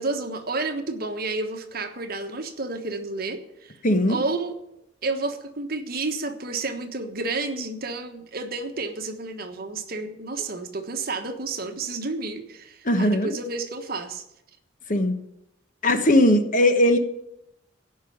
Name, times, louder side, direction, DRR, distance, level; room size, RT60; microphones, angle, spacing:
voice 1, 0.0-3.8 4.1-4.6 5.0-14.2, right 3 dB, 50° right, 6 dB, 1.3 m, -30 dB
voice 2, 3.8-4.2 12.8-13.3 14.9-15.2 15.8-17.0, left 1 dB, 45° left, 8 dB, 1.2 m, -19 dB
16.0 x 5.6 x 8.7 m, 0.83 s
head